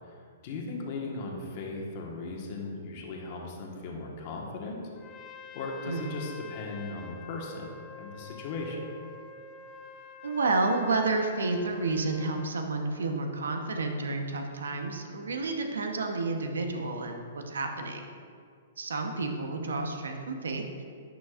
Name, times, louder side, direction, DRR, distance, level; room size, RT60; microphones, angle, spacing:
voice 1, 0.4-4.8 5.5-8.8, left 3 dB, 50° left, -1 dB, 1.4 m, -37 dB
Trumpet, 4.9-12.6, left 6 dB, 25° left, 0.5 m, -47 dB
voice 2, 5.8-6.2 10.2-18.1 18.8-20.8, right 3 dB, 85° right, 4 dB, 1.0 m, -30 dB
11.0 x 6.0 x 2.5 m, 2.2 s
hypercardioid pair, 130°, 0 cm